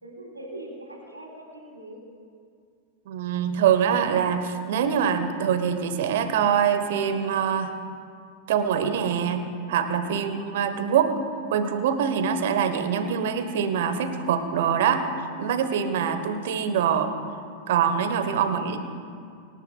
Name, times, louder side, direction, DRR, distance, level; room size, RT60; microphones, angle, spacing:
voice 1, 0.0-2.0 17.7-18.0, right 1 dB, 80° right, -4 dB, 3.5 m, -41 dB
voice 2, 3.1-7.7 8.5-11.1 11.5-15.0 15.4-17.1 17.7-18.8, right 7 dB, 55° right, 8 dB, 1.3 m, -24 dB
25.0 x 12.5 x 2.4 m, 2.3 s
figure-of-eight pair, 90°, 0 cm